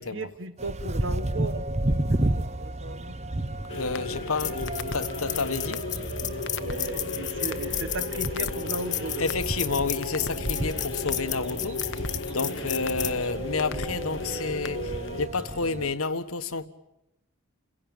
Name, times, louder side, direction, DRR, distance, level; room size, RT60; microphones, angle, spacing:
voice 1, 0.0-1.7 2.1-3.2 4.0-4.2 6.6-9.4 12.5-12.7, right 2 dB, 60° right, 1.4 m, -36 dB
sound 1, 0.6-15.9, right 1 dB, 30° right, 0.9 m, -33 dB
voice 2, 3.6-5.8 9.2-16.7, left 4 dB, 90° left, 1.5 m, -30 dB
sound 2, 3.7-15.3, left 4 dB, 60° left, 0.9 m, -36 dB
sound 3, 3.8-14.3, left 11 dB, 35° left, 1.4 m, -34 dB
29.5 x 16.5 x 9.0 m
head